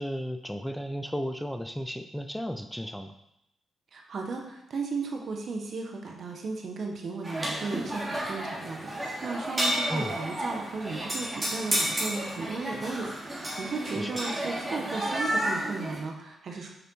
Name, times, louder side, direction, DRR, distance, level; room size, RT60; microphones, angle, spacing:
voice 1, 0.0-3.1 9.9-10.2 14.0-14.2, equal, ahead, 7 dB, 0.6 m, -34 dB
voice 2, 3.9-16.7, right 4 dB, 65° right, 2 dB, 1.4 m, -35 dB
sound 1, 7.2-16.0, right 1 dB, 25° right, 2.8 m, -31 dB
6.8 x 5.2 x 4.6 m, 0.82 s
supercardioid pair, 60°, 0 cm